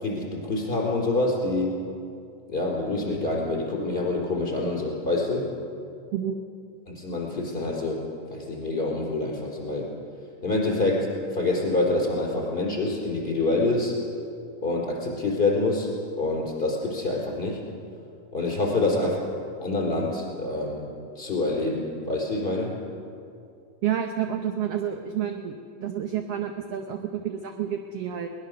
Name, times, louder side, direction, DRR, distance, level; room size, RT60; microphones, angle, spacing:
voice 1, 0.0-1.7 2.5-5.5 6.9-8.0 8.3-9.9 10.4-13.9 14.6-15.9 16.2-17.6 18.3-19.2 19.6-20.9 21.2-22.7, left 2 dB, 15° left, -3 dB, 4.5 m, -26 dB
voice 2, 23.8-25.5 25.8-28.3, right 9 dB, 70° right, 5 dB, 1.5 m, -29 dB
22.5 x 19.0 x 6.7 m, 2.5 s
omnidirectional pair, 3.9 m